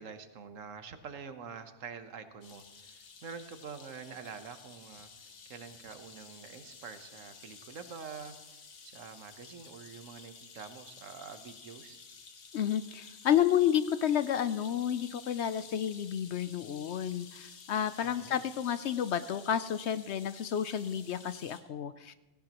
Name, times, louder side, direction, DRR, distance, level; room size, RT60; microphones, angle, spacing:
voice 1, 0.0-5.1 5.4-8.3 8.8-12.0 18.0-18.4, right 6 dB, 70° right, 9 dB, 1.3 m, -46 dB
sound 1, 2.4-21.6, left 5 dB, 85° left, 1.6 m, -53 dB
voice 2, 12.5-22.1, left 9 dB, 65° left, 13 dB, 0.8 m, -31 dB
17.5 x 17.0 x 3.0 m, 1.1 s
omnidirectional pair, 1.4 m